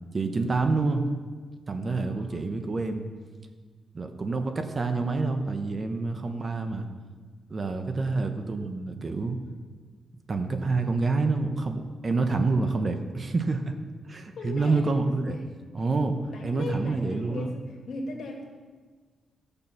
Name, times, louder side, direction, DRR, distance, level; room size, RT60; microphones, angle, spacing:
voice 1, 0.1-1.1 1.7-3.1 3.9-6.9 7.5-9.4 10.3-13.7 14.1-15.4 15.7-16.2 16.4-17.5, right 3 dB, 35° right, 6 dB, 1.1 m, -27 dB
voice 2, 2.2-2.5 8.0-8.4 14.4-15.1 15.6-15.7 16.3-18.4, left 2 dB, 70° left, 1 dB, 2.3 m, -38 dB
14.5 x 6.9 x 5.9 m, 1.5 s
cardioid pair, 115°, 0 cm